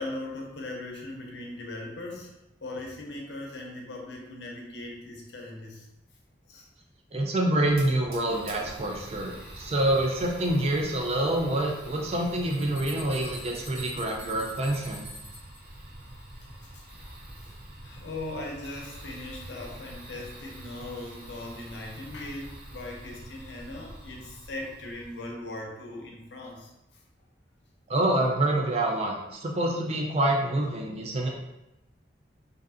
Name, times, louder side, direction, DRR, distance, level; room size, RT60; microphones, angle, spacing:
voice 1, 0.0-2.3 2.6-5.9 6.5-6.7 16.6-17.0 17.8-26.7, left 2 dB, 75° left, 0 dB, 0.6 m, -39 dB
voice 2, 7.1-15.0 27.9-31.3, right 1 dB, 35° right, 0 dB, 0.4 m, -26 dB
Fire, 7.7-25.3, right 1 dB, 55° right, 0.8 m, -45 dB
sound 1, 12.4-15.6, equal, 85° right, 1.2 m, -45 dB
2.6 x 2.4 x 2.5 m, 0.93 s
head